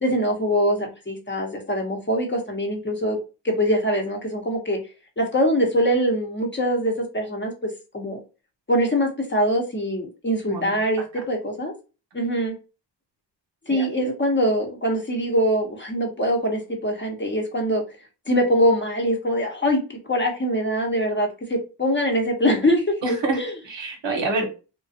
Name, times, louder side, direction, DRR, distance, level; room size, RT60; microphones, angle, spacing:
voice 1, 0.0-3.2 3.4-4.8 5.2-8.2 8.7-11.7 12.1-12.5 13.7-17.8 18.3-23.0 23.4-23.5, equal, 25° left, 1 dB, 0.8 m, -23 dB
voice 2, 23.0-24.6, right 3 dB, 80° right, 2 dB, 1.0 m, -27 dB
2.4 x 2.2 x 2.5 m, 0.31 s
cardioid pair, 80°, 44 cm